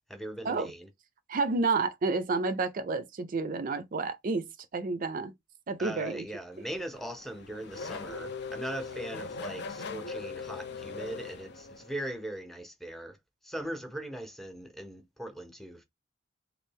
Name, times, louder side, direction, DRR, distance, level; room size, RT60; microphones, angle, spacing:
voice 1, 0.1-0.9 5.8-13.2 13.4-15.8, right 1 dB, ahead, 0.6 m, -40 dB
voice 2, 1.3-4.5 4.7-5.3 5.7-6.2 6.6-6.7, right 3 dB, 50° right, 0.4 m, -30 dB
Race car auto racing / Accelerating revving vroom, 6.6-12.1, left 4 dB, 65° left, 0.5 m, -40 dB
3.2 x 2.4 x 3.3 m
head